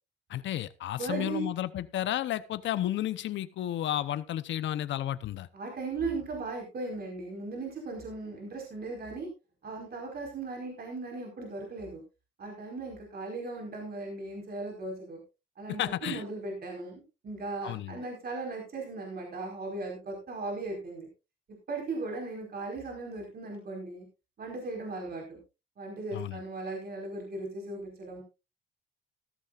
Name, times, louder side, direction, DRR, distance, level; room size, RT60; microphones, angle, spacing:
voice 1, 0.3-5.5 15.8-16.2 17.6-18.0 26.1-26.4, left 12 dB, 70° left, 15 dB, 0.8 m, -32 dB
voice 2, 1.0-1.5 5.5-9.3 9.6-12.0 12.4-15.2 15.6-21.1 21.7-24.0 24.4-25.4 25.8-28.2, right 3 dB, 50° right, 0 dB, 4.8 m, -37 dB
15.5 x 13.5 x 2.5 m, 0.28 s
cardioid pair, 90°, 20 cm